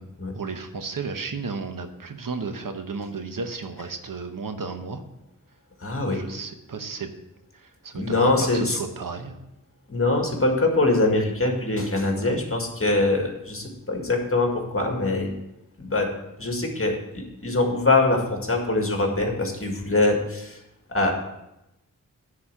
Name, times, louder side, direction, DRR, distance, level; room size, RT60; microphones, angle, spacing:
voice 1, 0.3-5.0 6.0-7.1 7.5-9.4 12.2-12.4, right 4 dB, 80° right, 7 dB, 1.0 m, -33 dB
voice 2, 5.8-6.2 8.0-8.8 9.9-15.3 15.8-16.1 16.4-20.6 20.9-21.1, left 2 dB, 40° left, 2 dB, 1.9 m, -23 dB
9.8 x 4.3 x 7.3 m, 0.88 s
wide cardioid pair, 70°, 33 cm